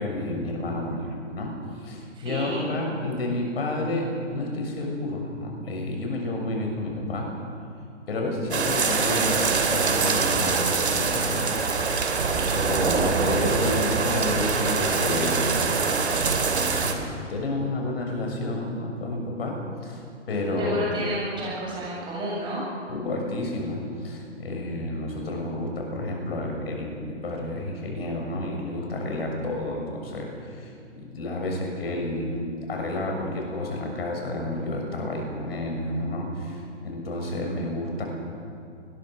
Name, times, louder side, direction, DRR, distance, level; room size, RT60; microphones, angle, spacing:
voice 1, 0.0-1.5 1.8-7.3 8.1-11.6 12.3-15.5 16.8-17.0 17.3-19.6 19.8-20.0 20.3-20.9 22.9-30.7 31.0-32.4 32.7-38.0, left 1 dB, 55° left, 1 dB, 6.6 m, -30 dB
voice 2, 2.2-2.7 20.6-22.6, equal, 15° right, -5 dB, 7.7 m, -30 dB
sound 1, 8.5-16.9, right 4 dB, 60° right, 3.0 m, -24 dB
22.5 x 20.5 x 6.3 m, 2.4 s
figure-of-eight pair, 130°, 36 cm